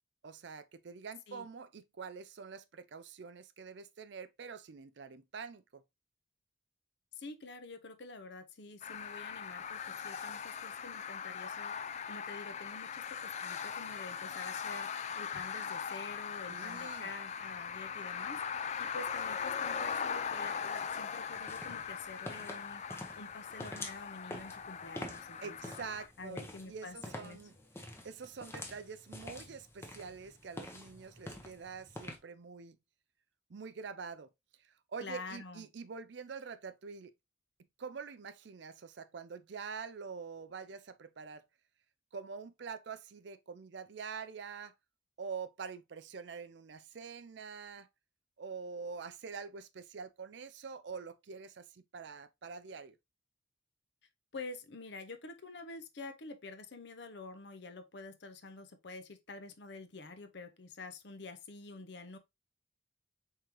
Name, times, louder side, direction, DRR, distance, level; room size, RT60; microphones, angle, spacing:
voice 1, 0.2-5.8 16.5-17.1 25.4-32.8 33.5-34.3 34.6-37.1 37.8-41.4 42.1-44.7 45.2-47.9 48.4-53.0, right 5 dB, 65° right, 0.5 m, -46 dB
voice 2, 7.1-11.7 12.1-22.8 23.2-25.7 26.2-27.0 27.2-27.4 35.0-35.7 54.3-62.2, left 3 dB, 60° left, 0.7 m, -48 dB
sound 1, 8.8-26.1, left 7 dB, 35° left, 0.3 m, -40 dB
sound 2, 21.3-32.2, left 1 dB, 15° left, 0.7 m, -47 dB
4.6 x 3.7 x 2.9 m
head